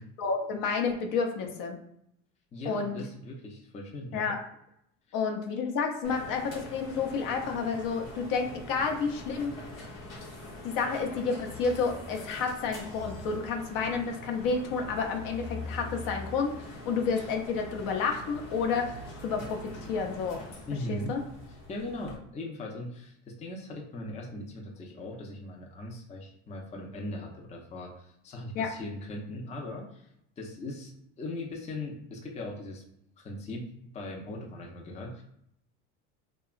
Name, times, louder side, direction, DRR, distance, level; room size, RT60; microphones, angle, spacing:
voice 1, 0.2-1.8 2.7-3.0 4.1-4.4 5.1-9.5 10.6-16.5 16.8-20.4 20.9-21.2 28.5-28.7, left 5 dB, 60° left, 3 dB, 0.6 m, -30 dB
voice 2, 2.5-4.3 20.7-21.1 21.5-30.1 30.4-32.8 33.2-35.2, left 1 dB, 20° left, -1 dB, 0.5 m, -39 dB
sound 1, 6.0-22.2, left 2 dB, 90° left, 1.0 m, -43 dB
2.8 x 2.2 x 2.4 m, 0.75 s
supercardioid pair, 90°, 38 cm